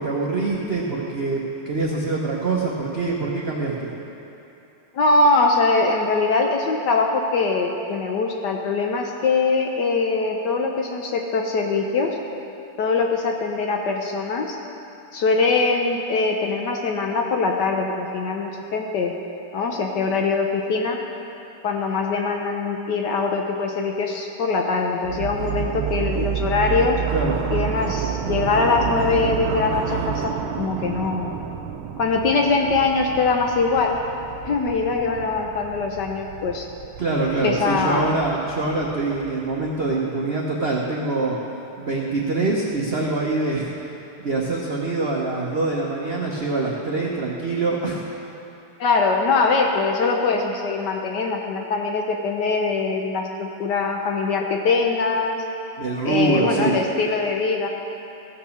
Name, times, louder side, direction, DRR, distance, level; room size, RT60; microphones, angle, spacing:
voice 1, 0.0-3.9 27.1-27.4 37.0-41.4 41.8-43.7 44.2-48.0 55.8-56.8, right 3 dB, 60° right, -3 dB, 0.6 m, -24 dB
voice 2, 4.9-12.2 12.8-14.6 15.1-19.1 19.5-21.0 21.6-27.0 27.5-31.3 32.0-34.0 34.5-36.7 37.4-38.1 48.8-55.4 56.0-57.7, left 4 dB, 65° left, 2 dB, 1.1 m, -22 dB
sound 1, 25.0-39.9, right 9 dB, 75° right, 1.3 m, -30 dB
15.5 x 5.8 x 6.4 m, 2.9 s
omnidirectional pair, 2.4 m